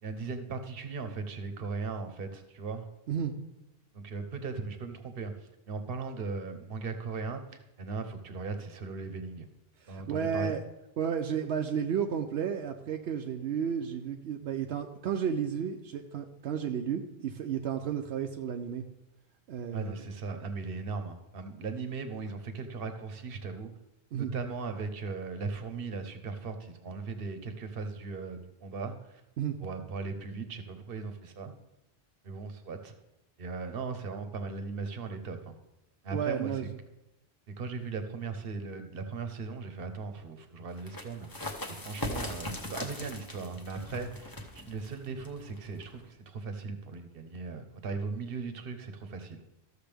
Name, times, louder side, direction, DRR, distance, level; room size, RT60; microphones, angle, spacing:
voice 1, 0.0-2.9 3.9-9.4 9.9-10.5 19.7-23.7 24.2-29.2 29.6-31.5 32.2-32.9 33.4-35.5 36.0-36.7 37.6-41.3 41.7-49.4, right 4 dB, 65° right, 8 dB, 1.1 m, -38 dB
voice 2, 9.8-10.6 11.0-18.8 19.5-20.0 24.1-24.3 29.4-29.6 36.1-36.6, right 8 dB, 80° right, 4 dB, 0.9 m, -32 dB
sound 1, 40.7-46.1, left 1 dB, 20° left, 0.9 m, -40 dB
13.5 x 6.5 x 3.4 m, 0.91 s
omnidirectional pair, 1.1 m